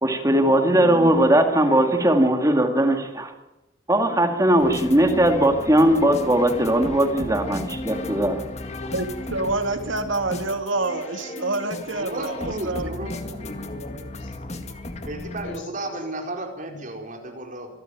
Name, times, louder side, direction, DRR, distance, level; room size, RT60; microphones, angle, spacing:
voice 1, 0.0-3.3 3.9-8.4, right 1 dB, 15° right, 5 dB, 2.2 m, -19 dB
sound 1, 4.6-15.6, left 2 dB, 35° left, 2.0 m, -35 dB
voice 2, 8.9-13.1, right 2 dB, 90° right, 7 dB, 2.5 m, -27 dB
voice 3, 11.9-13.5 15.0-17.7, right 1 dB, 40° right, 2 dB, 4.6 m, -33 dB
voice 4, 13.1-15.9 16.7-16.8, left 1 dB, 75° left, 3 dB, 7.2 m, -43 dB
25.5 x 14.0 x 9.4 m, 0.98 s
head